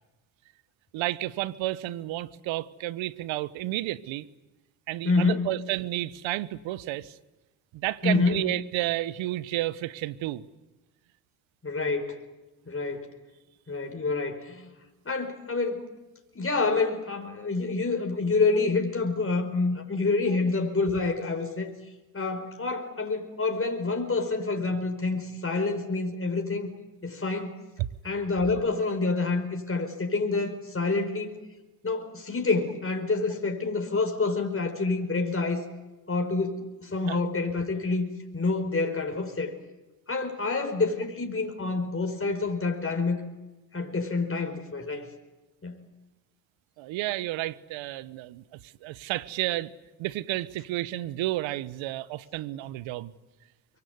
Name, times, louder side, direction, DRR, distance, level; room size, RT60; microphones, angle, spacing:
voice 1, 0.9-4.3 4.9-7.2 7.7-10.5 37.1-37.2 46.8-49.7 50.0-53.1, right 16 dB, 75° right, 1.1 m, -31 dB
voice 2, 5.0-5.5 8.0-8.4 11.6-12.2 12.7-13.1 13.7-14.7 15.0-15.9 16.3-21.7 22.1-26.7 27.0-27.5 28.0-31.3 31.8-35.6 36.1-38.1 38.3-39.5 40.1-43.2 43.7-45.1 45.6-45.8, left 3 dB, 30° left, 4.8 m, -27 dB
24.5 x 23.0 x 9.6 m
hypercardioid pair, 50°, 46 cm